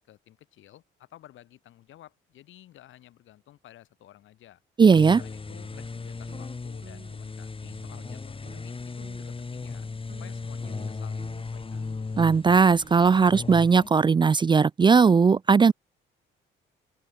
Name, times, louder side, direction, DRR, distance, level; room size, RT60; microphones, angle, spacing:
voice 1, 0.0-4.6 5.2-9.9 10.2-11.9, left 13 dB, 80° left, 5.4 m, -53 dB
voice 2, 4.8-5.2 12.2-15.7, right 5 dB, 25° right, 0.4 m, -18 dB
sound 1, 4.9-13.9, left 4 dB, 25° left, 3.5 m, -37 dB
sound 2, 5.5-6.5 6.8-7.2 7.6-8.2 8.5-8.7 9.0-9.4 9.8-14.2, right 6 dB, 45° right, 6.7 m, -52 dB
open air
cardioid pair, 90°, 20 cm